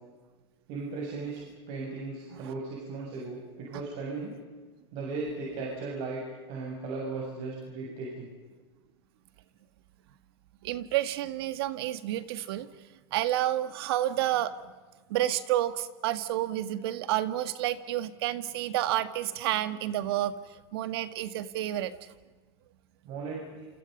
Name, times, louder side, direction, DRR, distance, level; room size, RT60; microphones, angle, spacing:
voice 1, 0.7-1.4 1.7-4.3 4.9-6.2 6.5-8.3 23.0-23.4, right 3 dB, 45° right, -2 dB, 7.7 m, -36 dB
voice 2, 10.6-12.7 13.1-14.5 15.1-22.1, right 13 dB, 65° right, 12 dB, 1.9 m, -30 dB
28.5 x 28.0 x 5.4 m, 1.3 s
supercardioid pair, 135°, 14 cm